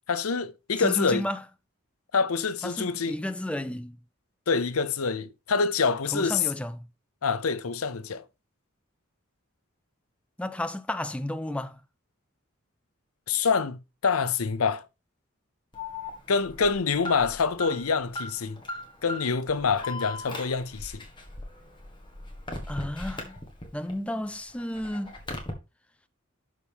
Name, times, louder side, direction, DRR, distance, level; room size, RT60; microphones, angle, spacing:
voice 1, 0.1-1.3 2.1-3.2 4.5-6.4 7.2-8.2 13.3-14.8 16.3-18.6 19.0-20.9, left 5 dB, 90° left, 0.7 m, -26 dB
voice 2, 0.8-1.4 2.6-4.0 6.1-6.9 10.4-11.8 22.7-23.4 23.7-25.2, left 1 dB, 5° left, 0.4 m, -32 dB
Alarm, 15.7-23.9 24.3-25.5, left 2 dB, 20° left, 1.6 m, -38 dB
12.0 x 4.1 x 3.6 m
head